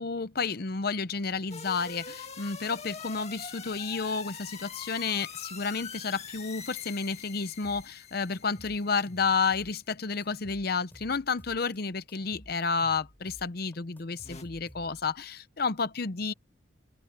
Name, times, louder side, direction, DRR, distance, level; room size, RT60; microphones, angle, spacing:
voice 1, 0.0-16.3, left 4 dB, 50° left, 0.7 m, -31 dB
sound 1, 1.5-9.3 14.2-14.4, left 6 dB, 35° left, 2.0 m, -44 dB
sound 2, 7.6-8.0 8.3-9.9 10.2-11.8 12.1-15.2, equal, 10° left, 3.6 m, -53 dB
open air
head